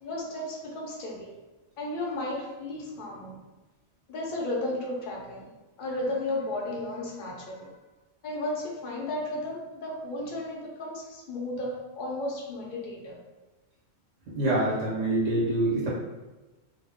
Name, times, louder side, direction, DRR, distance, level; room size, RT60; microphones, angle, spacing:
voice 1, 0.0-1.3 1.8-3.4 4.1-5.5 5.8-7.7 8.2-13.2, left 1 dB, 50° left, -2 dB, 0.7 m, -34 dB
voice 2, 14.3-15.9, right 1 dB, 85° right, -6 dB, 1.4 m, -25 dB
2.8 x 2.2 x 3.4 m, 1.1 s
omnidirectional pair, 1.3 m